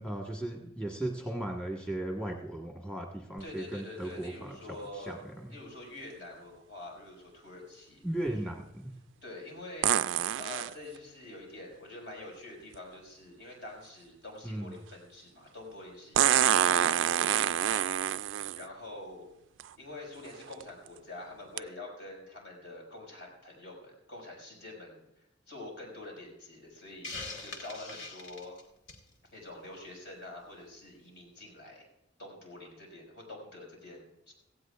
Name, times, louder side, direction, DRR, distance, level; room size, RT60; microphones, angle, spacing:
voice 1, 0.0-4.6 4.9-5.5 8.0-8.9 14.4-14.7, right 1 dB, 5° left, 0 dB, 1.4 m, -36 dB
voice 2, 3.4-5.2 5.5-8.2 8.5-8.6 9.2-10.1 10.3-19.3 19.8-25.0 25.5-28.6 29.3-31.9 32.2-34.3, left 2 dB, 65° left, -1 dB, 5.6 m, -46 dB
sound 1, 3.4-3.5 9.8-10.7 12.7-12.8 16.2-18.6 19.6-19.7 20.3-20.6 21.6-21.7, right 10 dB, 80° right, 0.3 m, -26 dB
Hiss, 27.0-29.1, left 3 dB, 85° left, 2.1 m, -42 dB
17.5 x 16.0 x 2.4 m, 0.87 s
head